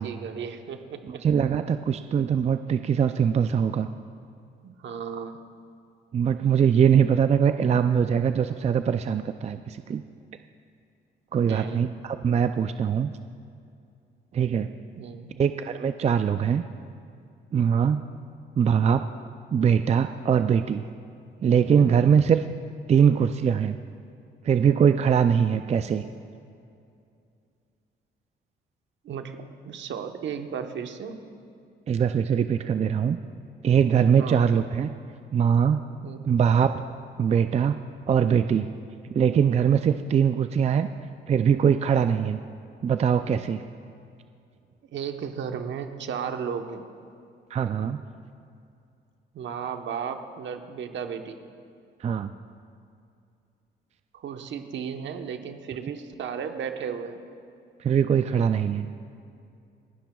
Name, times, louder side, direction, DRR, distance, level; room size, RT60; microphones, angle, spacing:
voice 1, 0.0-1.2 4.6-5.4 11.4-11.9 15.0-15.3 29.0-31.3 34.2-34.4 36.0-36.4 44.9-46.8 49.3-51.4 54.1-57.2, right 7 dB, 70° right, 6 dB, 1.1 m, -34 dB
voice 2, 1.1-3.9 6.1-10.0 11.3-13.1 14.3-14.7 15.4-16.6 17.5-18.0 18.6-19.1 19.5-20.8 21.4-22.4 22.9-23.8 24.4-26.1 31.9-33.2 33.6-34.9 35.3-35.8 36.2-36.8 37.2-37.8 38.1-38.7 39.1-40.9 41.3-42.4 42.8-43.6 47.5-48.0 52.0-52.3 57.8-58.9, right 7 dB, 35° right, 9 dB, 0.4 m, -22 dB
29.5 x 10.5 x 2.3 m, 2.5 s
cardioid pair, 90°, 20 cm